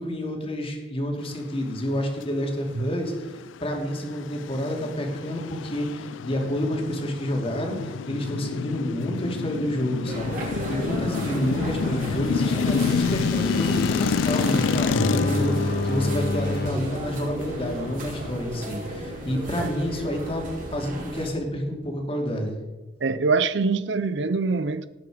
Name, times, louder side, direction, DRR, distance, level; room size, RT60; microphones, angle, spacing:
voice 1, 0.0-20.4 20.7-22.6, equal, 30° left, 2.7 m, -29 dB
sound 1, 3.3-20.0, left 5 dB, 85° left, 0.4 m, -29 dB
sound 2, 10.0-21.3, right 1 dB, 45° right, 5.2 m, -35 dB
sound 3, 12.8-16.7 17.4-17.5, left 2 dB, 55° left, 1.6 m, -29 dB
voice 2, 23.0-24.9, right 4 dB, 65° right, 0.6 m, -24 dB
18.0 x 9.4 x 5.1 m
head